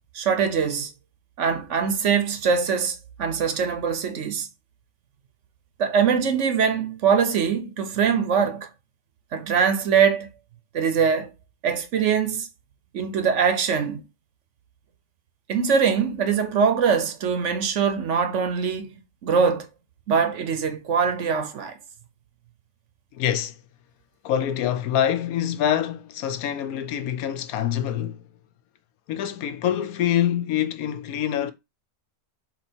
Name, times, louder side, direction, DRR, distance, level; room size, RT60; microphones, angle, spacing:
voice 1, 0.1-0.9 1.4-4.5 5.8-8.7 9.3-10.3 10.7-11.3 11.6-12.5 12.9-14.0 15.5-19.0 19.2-19.7 20.1-21.8, right 6 dB, 55° right, 1.0 m, -22 dB
voice 2, 23.1-23.5 24.2-28.2 29.1-31.5, left 10 dB, 70° left, 1.1 m, -25 dB
4.2 x 2.9 x 4.3 m
omnidirectional pair, 1.6 m